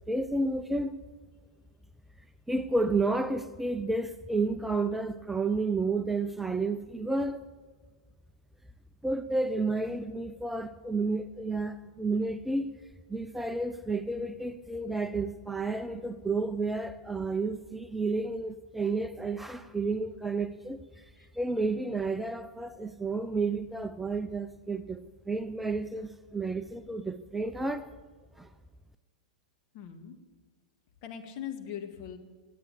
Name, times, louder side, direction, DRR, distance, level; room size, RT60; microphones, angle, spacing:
voice 1, 0.1-1.0 2.5-7.5 9.0-12.7 13.1-21.1 21.3-27.9 28.4-28.5, right 3 dB, 5° right, 10 dB, 0.5 m, -31 dB
voice 2, 29.7-30.2 31.0-32.2, left 9 dB, 45° left, 5 dB, 2.0 m, -40 dB
17.5 x 8.6 x 8.6 m, 1.5 s
hypercardioid pair, 100°, 4 cm